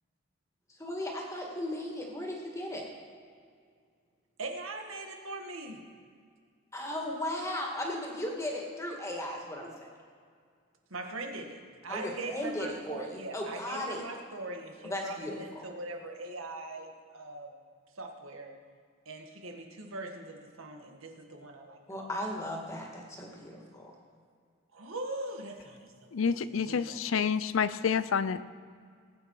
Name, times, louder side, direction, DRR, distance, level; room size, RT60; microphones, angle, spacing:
voice 1, 0.8-2.9 6.7-9.9 11.9-14.1 14.8-15.4 21.9-23.9, left 1 dB, 15° left, 2.1 m, -36 dB
voice 2, 4.4-5.8 10.9-17.5 18.0-18.5 19.1-21.8 24.7-26.4 26.6-27.1, right 2 dB, 90° right, 1.8 m, -41 dB
voice 3, 26.1-28.4, left 6 dB, 75° left, 0.5 m, -28 dB
20.0 x 9.0 x 4.9 m
head